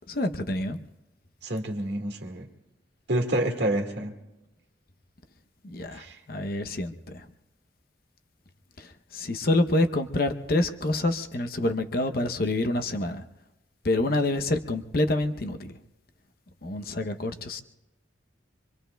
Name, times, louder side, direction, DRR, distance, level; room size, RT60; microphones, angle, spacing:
voice 1, 0.1-0.8 5.6-7.3 8.8-13.2 13.8-15.8 16.6-17.6, left 2 dB, 50° left, 7 dB, 0.7 m, -27 dB
voice 2, 1.4-2.5 3.1-4.1 5.9-6.2, right 1 dB, 65° right, 2 dB, 1.8 m, -28 dB
25.5 x 25.0 x 2.2 m, 1.0 s
head